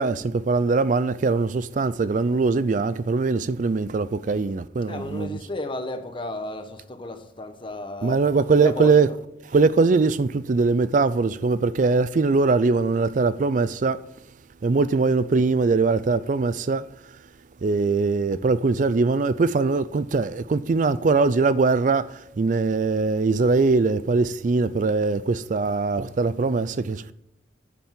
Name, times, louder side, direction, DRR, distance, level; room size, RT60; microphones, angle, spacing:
voice 1, 0.0-5.4 8.0-9.1 9.5-14.0 14.6-16.9 17.6-27.1, right 4 dB, 45° right, 0.4 m, -21 dB
voice 2, 4.9-9.2, left 2 dB, 25° left, 1.1 m, -34 dB
9.1 x 7.1 x 7.6 m
head